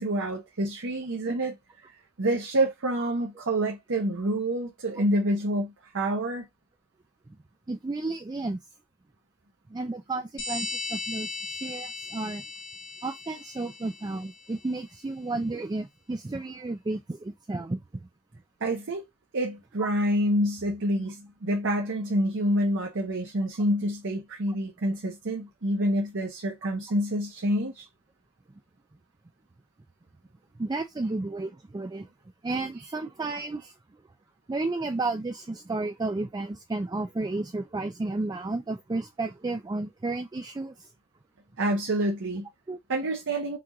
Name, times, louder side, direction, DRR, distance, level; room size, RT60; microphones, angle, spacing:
voice 1, 0.0-1.6 2.2-6.4 18.6-19.0 19.3-27.9 41.6-42.5 42.9-43.6, right 1 dB, 55° right, 0.8 m, -27 dB
voice 2, 7.7-8.6 9.7-12.4 13.0-17.8 30.6-32.1 32.4-33.7 34.5-40.9 42.7-42.8, right 2 dB, 20° right, 0.4 m, -32 dB
sound 1, 10.4-14.7, left 3 dB, 55° left, 1.8 m, -37 dB
5.9 x 2.5 x 3.0 m
head